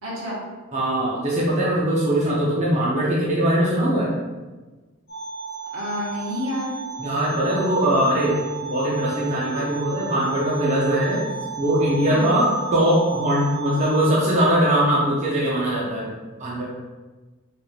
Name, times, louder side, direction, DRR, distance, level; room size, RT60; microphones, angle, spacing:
voice 1, 0.0-0.4 5.7-6.8 12.0-12.4, equal, 70° right, -5 dB, 1.2 m, -29 dB
voice 2, 0.7-4.1 7.0-8.4 8.6-11.2 11.6-16.1 16.4-16.6, right 1 dB, 30° right, -6 dB, 0.6 m, -21 dB
sound 1, 5.1-14.0, right 5 dB, 65° left, 1.2 m, -34 dB
4.2 x 3.3 x 2.4 m, 1.3 s
head